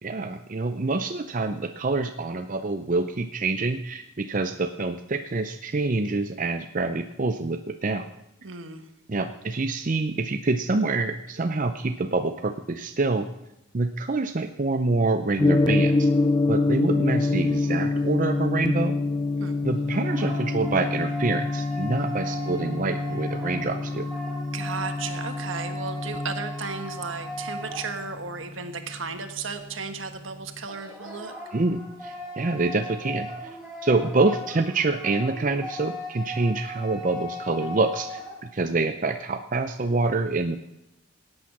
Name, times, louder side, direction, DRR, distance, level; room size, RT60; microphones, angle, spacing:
voice 1, 0.0-8.1 9.1-13.3 13.7-16.1 16.5-19.0 19.6-24.1 31.5-33.3 33.8-40.6, right 3 dB, 40° right, 7 dB, 0.6 m, -26 dB
voice 2, 8.4-8.8 19.4-19.6 24.5-31.3, right 5 dB, 70° right, 7 dB, 1.5 m, -34 dB
Gong, 15.4-29.6, left 2 dB, 20° left, 0.5 m, -26 dB
sound 1, 19.7-28.4 30.7-38.4, left 1 dB, ahead, 3.6 m, -38 dB
17.0 x 8.9 x 6.0 m, 0.89 s
head